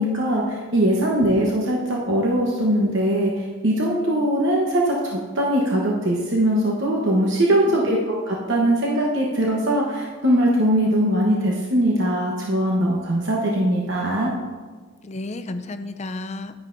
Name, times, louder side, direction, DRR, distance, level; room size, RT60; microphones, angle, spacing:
voice 1, 0.0-14.3, right 1 dB, 60° right, -2 dB, 1.0 m, -21 dB
voice 2, 15.0-16.5, left 2 dB, 35° left, 9 dB, 0.5 m, -33 dB
10.5 x 9.7 x 2.6 m, 1.5 s
head